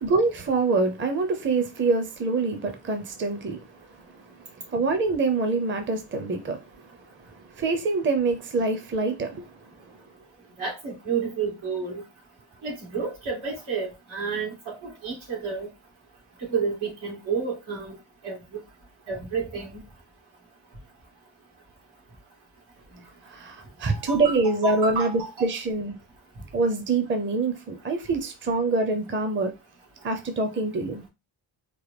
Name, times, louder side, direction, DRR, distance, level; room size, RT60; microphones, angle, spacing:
voice 1, 0.0-3.6 4.7-6.6 7.6-9.5 23.3-26.0 26.5-29.5 30.0-31.0, right 3 dB, 25° right, 0.6 m, -25 dB
voice 2, 10.6-12.0 12.6-15.7 16.4-18.0 18.2-18.6 19.1-19.8 23.9-25.5, right 5 dB, 85° right, 2.2 m, -31 dB
4.6 x 2.2 x 3.3 m
cardioid pair, 115°, 47 cm